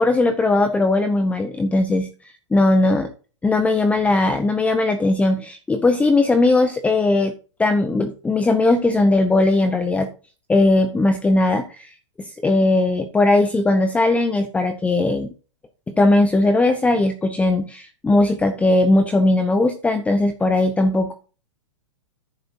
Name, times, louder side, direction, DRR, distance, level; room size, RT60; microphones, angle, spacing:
voice 1, 0.0-2.1 2.5-3.1 3.4-7.3 7.6-10.1 10.5-15.3 15.9-21.1, left 2 dB, 10° left, 8 dB, 0.9 m, -18 dB
11.0 x 10.0 x 2.7 m, 0.35 s
hypercardioid pair, 130°, 16 cm